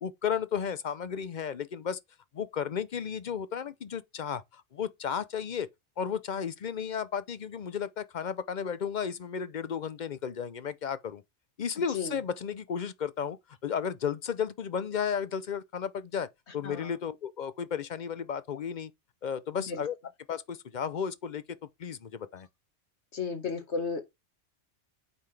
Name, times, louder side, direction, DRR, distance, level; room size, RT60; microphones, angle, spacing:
voice 1, 0.0-2.0 2.3-5.7 6.0-11.2 11.6-13.4 13.6-16.3 16.5-18.9 19.2-20.0 20.3-21.4 21.8-22.5, left 7 dB, 50° left, 0.6 m, -33 dB
voice 2, 23.1-24.0, left 5 dB, 75° left, 1.7 m, -33 dB
8.2 x 5.6 x 3.3 m
omnidirectional pair, 1.2 m